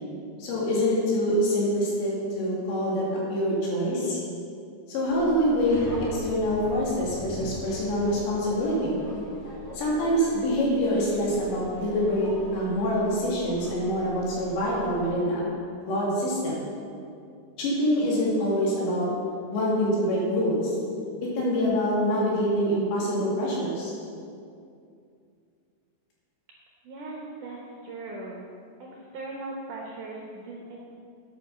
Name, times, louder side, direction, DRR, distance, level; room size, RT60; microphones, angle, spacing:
voice 1, 0.4-4.2 4.9-5.8 6.1-9.0 9.7-15.4 15.8-16.6 17.6-19.1 19.5-20.8 21.2-23.9, equal, 80° left, -5 dB, 4.8 m, -25 dB
Subway metro underground, 5.1-15.1, left 1 dB, 45° left, 3.6 m, -41 dB
voice 2, 26.8-27.6 27.8-28.5 28.8-30.8, right 2 dB, 70° right, -2 dB, 2.0 m, -39 dB
8.7 x 8.4 x 6.8 m, 2.4 s
omnidirectional pair, 5.0 m